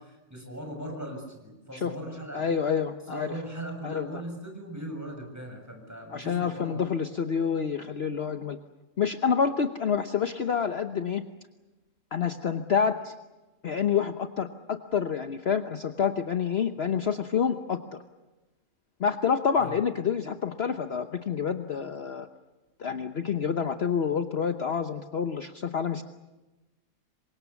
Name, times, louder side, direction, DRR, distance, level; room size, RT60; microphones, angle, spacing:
voice 1, 0.0-2.6 3.1-6.9 19.6-19.8, right 1 dB, 10° right, 3 dB, 6.9 m, -39 dB
voice 2, 2.3-3.3 3.8-4.2 6.1-8.6 9.0-11.2 12.1-13.1 13.6-17.8 19.0-22.3 22.8-26.0, left 7 dB, 50° left, 7 dB, 1.2 m, -28 dB
27.5 x 24.0 x 7.1 m, 1.1 s
omnidirectional pair, 1.5 m